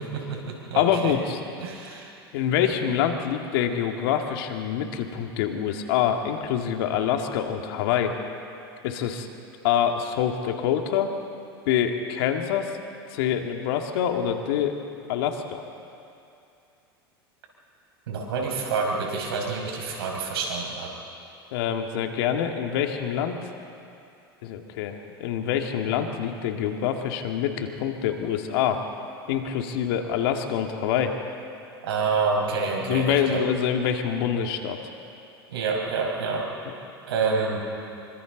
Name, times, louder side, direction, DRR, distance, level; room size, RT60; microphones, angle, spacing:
voice 1, 0.0-1.1 1.6-2.1 18.1-20.9 31.8-33.4 35.5-36.5 37.1-37.6, right 4 dB, 75° right, 0 dB, 5.2 m, -28 dB
voice 2, 0.8-1.4 2.3-8.2 8.8-9.3 9.6-11.1 11.7-12.7 13.1-14.7 15.1-15.6 21.5-23.4 24.4-28.8 29.3-31.2 32.9-34.8, left 9 dB, 65° left, 4 dB, 2.1 m, -25 dB
27.5 x 24.0 x 4.0 m, 2.6 s
hypercardioid pair, 85°, 13 cm